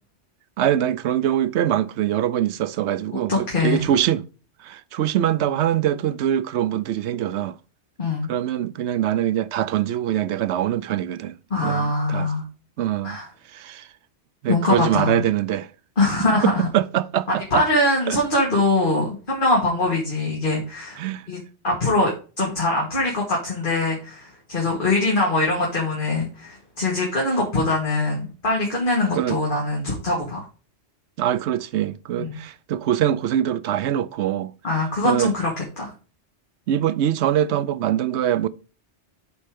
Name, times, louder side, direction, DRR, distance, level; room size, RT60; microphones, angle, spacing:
voice 1, 0.6-4.2 4.6-7.6 8.3-11.4 11.6-12.3 12.8-13.2 13.5-13.9 14.4-15.7 16.4-17.6 18.1-18.2 21.0-21.2 29.1-29.4 31.2-34.5 35.0-35.3 36.7-38.5, right 11 dB, 80° right, 0.9 m, -23 dB
voice 2, 3.3-3.8 8.0-8.3 11.5-12.4 13.0-13.3 14.5-15.2 16.0-16.7 17.5-21.0 21.3-30.5 32.2-32.4 34.6-35.5 35.8-35.9, left 2 dB, 50° left, 2.3 m, -22 dB
8.2 x 4.3 x 5.1 m
omnidirectional pair, 1.2 m